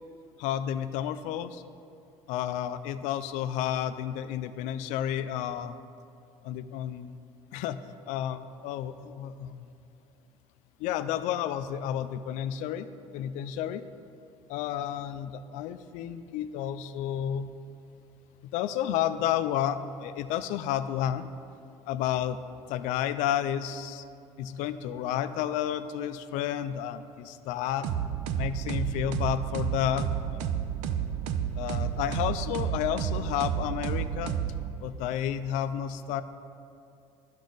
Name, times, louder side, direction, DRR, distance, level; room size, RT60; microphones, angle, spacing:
voice 1, 0.4-1.6 2.3-5.8 6.4-7.1 7.5-7.8 8.1-9.6 10.8-12.9 13.1-13.8 14.5-17.6 18.5-21.3 21.9-22.4 22.7-24.0 24.4-27.9 28.4-30.5 31.6-34.3 34.8-36.2, left 10 dB, 90° left, 12 dB, 0.4 m, -31 dB
sound 1, 27.8-35.0, right 9 dB, 85° right, 0.5 m, -31 dB
10.0 x 6.2 x 3.9 m, 2.5 s
cardioid pair, 150°, 12 cm